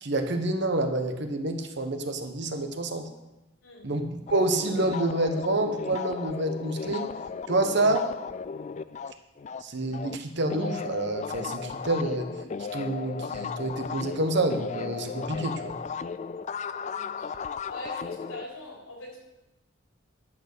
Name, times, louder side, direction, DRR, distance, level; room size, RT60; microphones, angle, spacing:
voice 1, 0.0-3.0 3.8-7.1 7.5-8.0 9.6-12.3 12.7-15.8, right 2 dB, 55° right, 6 dB, 1.2 m, -28 dB
voice 2, 3.6-3.9 16.7-17.4 17.7-19.3, left 1 dB, 85° left, -2 dB, 4.0 m, -43 dB
sound 1, 4.3-10.2 10.4-18.4, left 5 dB, 35° left, 0.3 m, -35 dB
11.0 x 6.7 x 6.7 m, 0.97 s
head